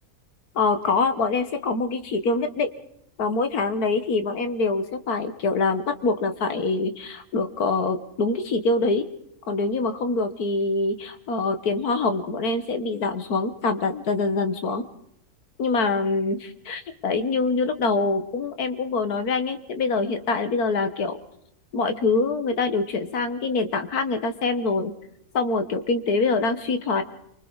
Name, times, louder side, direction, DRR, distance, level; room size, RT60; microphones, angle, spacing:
voice 1, 0.6-2.7 3.2-9.0 9.5-14.8 15.6-21.2 21.7-24.9 25.3-27.0, left 3 dB, 85° left, 9 dB, 1.9 m, -24 dB
29.0 x 24.0 x 4.1 m, 0.74 s
omnidirectional pair, 1.6 m